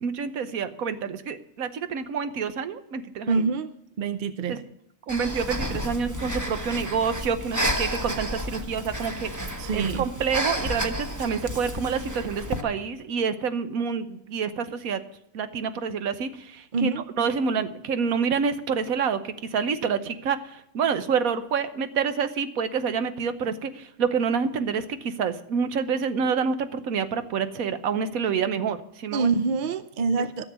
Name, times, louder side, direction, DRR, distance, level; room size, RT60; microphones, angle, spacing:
voice 1, 0.0-3.4 4.5-4.6 5.1-9.3 9.7-15.0 15.3-29.3, right 6 dB, 90° right, 11 dB, 1.4 m, -27 dB
voice 2, 3.3-3.7 4.0-4.6 9.6-10.1 16.7-17.0 29.1-30.4, right 4 dB, 55° right, 12 dB, 0.6 m, -25 dB
Breathing, 5.1-12.6, equal, 15° right, 0.9 m, -31 dB
13.5 x 7.1 x 8.0 m, 0.74 s
omnidirectional pair, 1.4 m